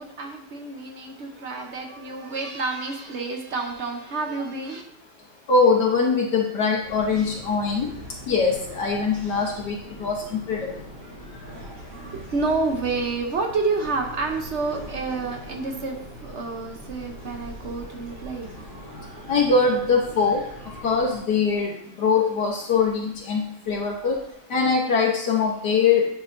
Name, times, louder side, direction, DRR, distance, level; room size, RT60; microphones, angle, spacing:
voice 1, 0.0-4.8 12.1-18.5, right 3 dB, 50° right, 3 dB, 0.9 m, -29 dB
voice 2, 5.5-7.9 8.3-10.8 19.3-20.4 20.8-24.2 24.5-26.1, left 4 dB, 70° left, -1 dB, 1.5 m, -22 dB
sound 1, 6.8-21.2, equal, 30° right, 1.7 m, -41 dB
9.6 x 5.4 x 2.6 m, 0.73 s
omnidirectional pair, 1.9 m